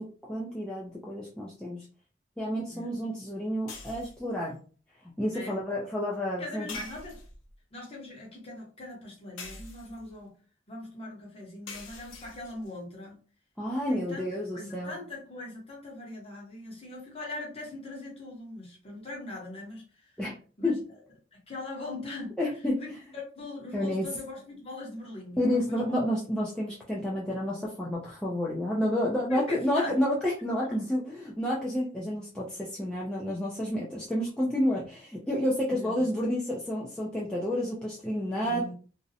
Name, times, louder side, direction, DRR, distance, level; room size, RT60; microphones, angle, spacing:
voice 1, 0.0-1.8 2.4-4.6 5.2-6.8 13.6-14.9 20.2-20.3 20.6-20.8 22.4-22.8 23.7-24.1 25.4-38.7, left 1 dB, 5° left, -6 dB, 0.3 m, -30 dB
sound 1, 3.7-4.3 6.7-7.5 9.4-10.1 11.7-12.7, left 3 dB, 85° left, 0.6 m, -44 dB
voice 2, 6.4-7.2 7.7-10.3 10.7-13.2 13.9-14.2 14.5-20.2 20.6-20.8 21.3-22.4 22.8-26.0 29.3-30.0 30.7-30.8 35.7-36.0 38.4-38.7, left 2 dB, 30° left, -2 dB, 0.8 m, -41 dB
2.5 x 2.0 x 2.6 m, 0.39 s
head